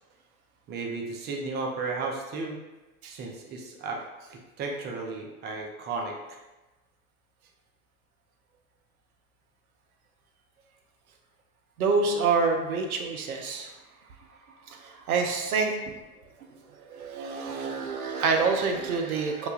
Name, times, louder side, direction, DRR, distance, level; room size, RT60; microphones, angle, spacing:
voice 1, 0.7-2.6 3.0-4.0 4.3-6.4, right 3 dB, 25° right, 0 dB, 0.4 m, -34 dB
voice 2, 11.8-13.7 14.6-15.7 16.7-19.5, right 4 dB, 80° right, 3 dB, 0.5 m, -27 dB
3.0 x 2.1 x 2.3 m, 1.1 s
figure-of-eight pair, 80°, 43 cm